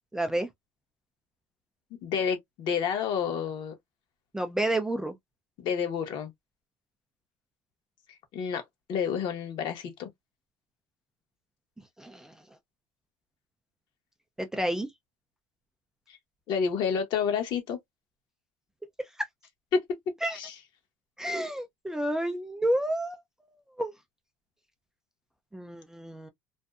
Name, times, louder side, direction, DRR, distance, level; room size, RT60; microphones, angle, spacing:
voice 1, 0.1-0.5 4.3-5.1 12.0-12.3 14.4-14.9 20.2-20.4 21.2-23.2 23.8-23.9 25.5-26.3, right 1 dB, 5° right, 0.4 m, -30 dB
voice 2, 2.0-3.7 5.6-6.3 8.3-8.6 8.9-10.1 16.1-16.2 16.5-17.8 19.7-19.8 20.3-20.5, left 6 dB, 55° left, 1.0 m, -29 dB
2.6 x 2.1 x 2.3 m
cardioid pair, 125°, 9 cm